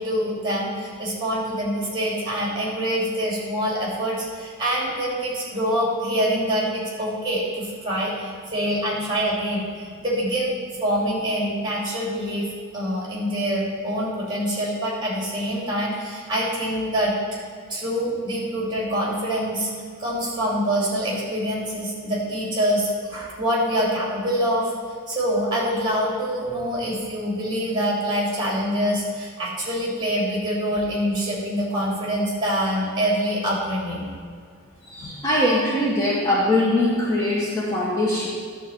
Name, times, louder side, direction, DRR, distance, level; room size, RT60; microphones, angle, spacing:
voice 1, 0.0-10.5 10.8-12.5 12.7-17.1 17.7-19.7 20.0-24.7 25.1-34.1 35.0-35.1, equal, 20° right, -4 dB, 2.7 m, -25 dB
voice 2, 34.8-38.3, left 1 dB, 15° left, -5 dB, 1.0 m, -22 dB
11.0 x 4.0 x 7.2 m, 2.1 s
head